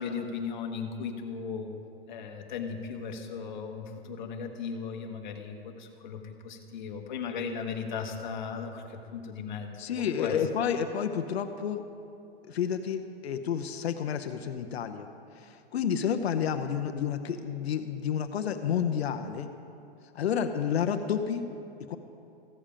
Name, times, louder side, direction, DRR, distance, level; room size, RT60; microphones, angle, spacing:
voice 1, 0.0-1.7 2.1-9.9 10.2-10.4, left 6 dB, 50° left, 3 dB, 1.1 m, -37 dB
voice 2, 9.8-11.8 12.4-15.1 15.3-19.5 20.1-21.4 21.9-22.0, left 8 dB, 80° left, 8 dB, 0.7 m, -30 dB
15.0 x 7.4 x 5.0 m, 2.6 s
hypercardioid pair, 175°, 31 cm